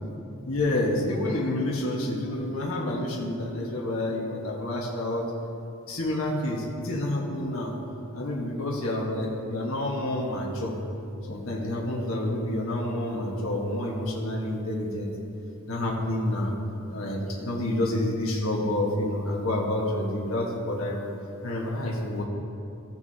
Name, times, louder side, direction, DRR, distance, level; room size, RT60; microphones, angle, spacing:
voice 1, 0.4-5.2 5.9-7.7 8.1-10.8 11.3-15.1 15.7-16.5 16.9-21.1 21.4-22.2, left 1 dB, 80° left, -3 dB, 1.3 m, -28 dB
15.0 x 6.0 x 2.7 m, 2.6 s
head